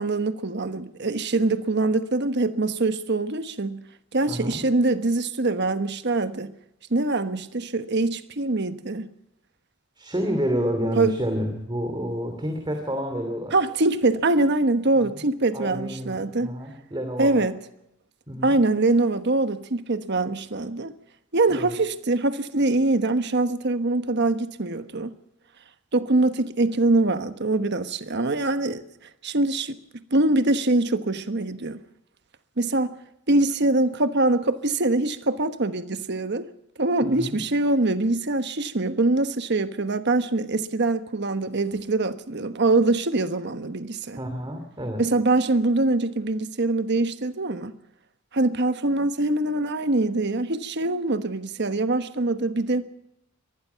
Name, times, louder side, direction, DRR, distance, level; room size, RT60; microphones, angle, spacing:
voice 1, 0.0-3.8 4.1-6.5 6.9-9.1 11.0-11.1 13.5-16.5 17.2-17.6 18.4-20.9 21.3-25.1 25.9-28.8 29.2-29.8 30.1-31.8 32.6-32.9 33.3-36.5 36.8-44.2 45.0-47.7 48.3-52.8, right 2 dB, 55° right, 1.2 m, -23 dB
voice 2, 4.3-4.6 10.0-13.5 15.0-15.2 15.5-17.4 18.3-18.5 21.5-21.7 37.0-37.4 44.2-45.0, equal, 20° right, 2.8 m, -29 dB
24.5 x 19.5 x 5.7 m
head